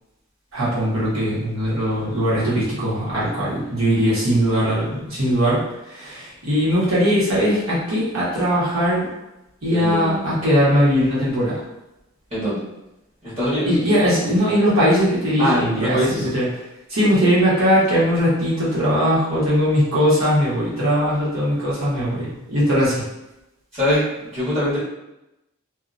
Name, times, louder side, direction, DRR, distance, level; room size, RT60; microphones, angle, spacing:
voice 1, 0.5-5.6 5.9-9.1 9.6-11.6 13.6-16.4 16.9-23.0, equal, 85° right, -8 dB, 1.3 m, -20 dB
voice 2, 9.7-10.3 12.3-12.6 13.2-13.8 15.4-16.3 23.7-24.8, equal, 30° right, -11 dB, 1.3 m, -23 dB
2.7 x 2.3 x 2.5 m, 0.92 s
head